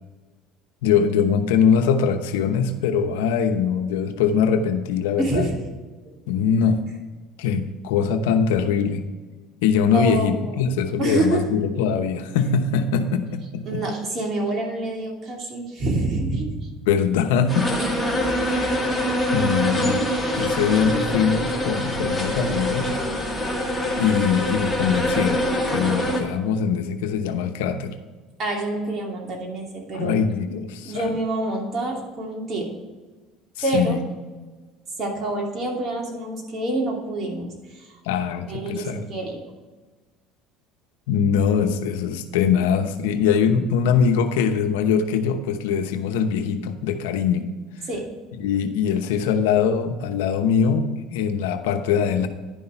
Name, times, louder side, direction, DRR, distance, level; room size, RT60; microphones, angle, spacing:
voice 1, 0.8-5.5 6.3-6.8 7.4-9.0 9.6-13.8 16.9-17.7 18.4-18.7 19.3-20.0 20.4-22.9 23.9-27.9 29.9-31.1 33.7-34.0 38.0-39.1 41.1-47.5 48.3-52.3, left 7 dB, 90° left, 7 dB, 0.8 m, -22 dB
voice 2, 5.2-5.6 9.9-10.5 11.0-11.5 13.6-16.7 28.4-30.1 30.8-32.7 33.6-34.0 35.0-37.9 38.5-39.4 47.9-48.1, right 2 dB, 40° right, 0 dB, 2.7 m, -27 dB
sound 1, 17.5-26.2, left 1 dB, ahead, 2.2 m, -24 dB
11.0 x 5.6 x 4.5 m, 1.3 s
supercardioid pair, 105°, 0 cm